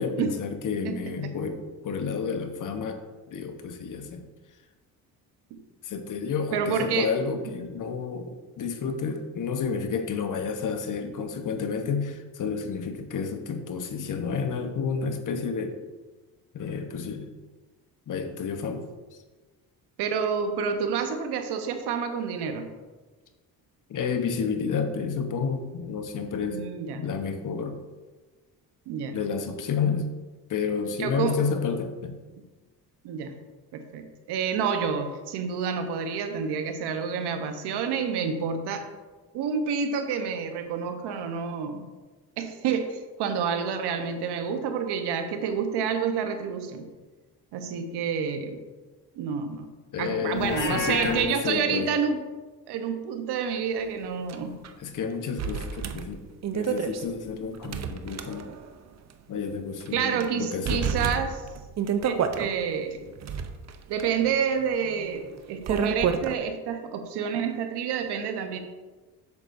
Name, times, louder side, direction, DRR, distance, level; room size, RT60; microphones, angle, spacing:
voice 1, 0.0-3.0 3.3-4.2 5.8-15.8 16.5-17.3 18.1-18.9 23.9-26.6 26.9-27.8 29.1-30.1 30.5-32.2 49.9-51.9 54.8-56.2 56.5-58.5 59.3-60.9, left 5 dB, 50° left, 6 dB, 0.9 m, -30 dB
voice 2, 0.8-1.3 5.5-5.6 6.5-7.1 20.0-22.7 26.4-27.0 28.9-29.2 31.0-31.4 33.0-33.4 33.7-38.9 39.3-41.9 42.4-46.9 47.5-48.6 49.2-49.7 50.0-52.2 52.7-54.6 59.9-61.4 62.0-63.1 63.9-68.6, right 6 dB, 80° right, 7 dB, 0.9 m, -29 dB
Livestock farm animals working animals, 50.3-51.2, left 2 dB, 25° left, 1.3 m, -30 dB
sound 1, 54.3-54.4 54.6-54.7 55.4-58.8 59.1-59.2 59.8-60.3 60.7-62.5 63.1-66.4, right 7 dB, 45° right, 0.6 m, -30 dB
8.1 x 6.8 x 2.6 m, 1.3 s
cardioid pair, 90°, 39 cm